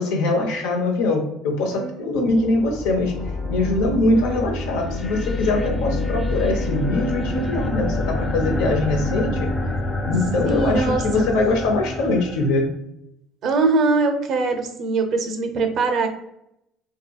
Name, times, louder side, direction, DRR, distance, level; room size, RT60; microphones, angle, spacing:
voice 1, 0.0-3.2 3.5-9.5 10.1-12.7, left 2 dB, 85° left, 2 dB, 0.6 m, -22 dB
sound 1, 2.1-12.7, left 2 dB, 25° left, 0.5 m, -27 dB
voice 2, 4.1-4.5 10.5-11.3 13.4-16.1, right 3 dB, 55° right, 6 dB, 0.5 m, -22 dB
2.7 x 2.6 x 2.3 m, 0.80 s
supercardioid pair, 95°, 0 cm